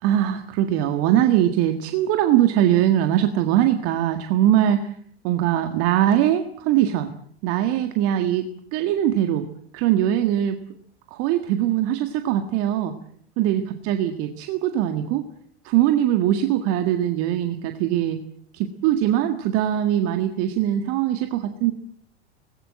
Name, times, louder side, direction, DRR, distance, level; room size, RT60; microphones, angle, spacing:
voice 1, 0.0-4.9 5.2-7.1 7.4-8.5 8.7-9.5 9.7-10.6 11.1-12.9 13.4-15.2 15.7-18.2 18.5-21.7, right 11 dB, 45° right, 7 dB, 1.9 m, -21 dB
25.5 x 20.0 x 7.6 m, 0.65 s
figure-of-eight pair, 90°, 33 cm